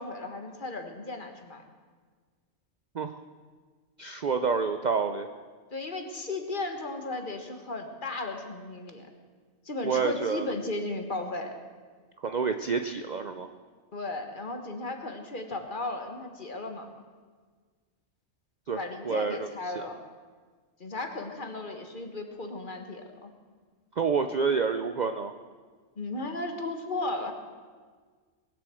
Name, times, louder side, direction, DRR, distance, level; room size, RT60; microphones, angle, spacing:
voice 1, 0.0-1.6 5.7-9.1 9.6-11.6 13.9-16.9 18.7-20.0 20.8-23.3 26.0-27.3, left 2 dB, 40° left, 5 dB, 1.6 m, -35 dB
voice 2, 4.0-5.3 9.8-10.5 12.2-13.5 18.7-18.8 19.0-19.5 24.0-25.3, right 5 dB, 50° right, 8 dB, 0.6 m, -28 dB
20.0 x 7.9 x 7.7 m, 1.5 s
omnidirectional pair, 1.4 m